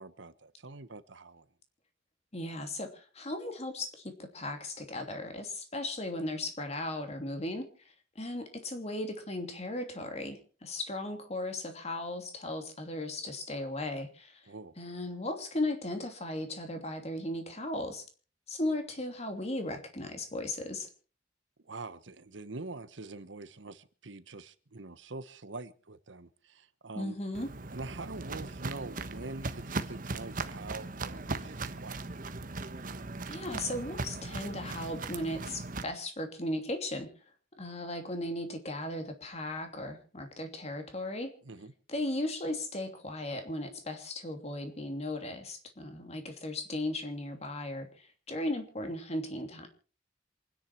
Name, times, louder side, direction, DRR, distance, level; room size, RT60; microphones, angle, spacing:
voice 1, 0.0-1.5 14.5-14.7 21.6-27.2 27.7-32.0 41.4-41.7, right 3 dB, 80° right, 1.2 m, -44 dB
voice 2, 2.3-7.7 8.1-14.5 14.8-18.1 18.5-20.9 26.9-27.5 33.3-37.1 37.6-41.3 41.9-49.7, left 1 dB, 35° left, 2.9 m, -36 dB
Walk footsteps, 27.3-35.8, right 3 dB, 45° right, 1.2 m, -38 dB
27.0 x 10.5 x 4.5 m
head